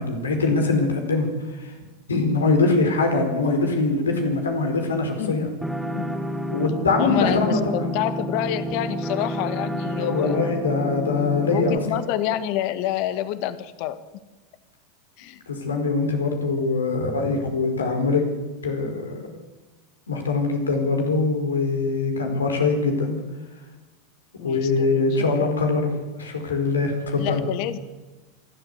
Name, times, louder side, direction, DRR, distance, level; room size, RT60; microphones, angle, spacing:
voice 1, 0.0-1.7 2.1-5.5 6.5-7.8 10.0-11.8 15.5-18.2 18.6-19.2 20.1-23.2 24.4-27.4, left 3 dB, 85° left, 4 dB, 4.8 m, -23 dB
voice 2, 5.2-5.5 5.9-6.2 7.0-10.5 11.4-14.0 15.2-15.4 24.4-25.5 27.2-27.8, left 12 dB, 55° left, 12 dB, 1.7 m, -28 dB
sound 1, 5.6-11.8, equal, ahead, 2.7 m, -29 dB
26.5 x 13.0 x 8.1 m, 1.2 s
hypercardioid pair, 90°, 0 cm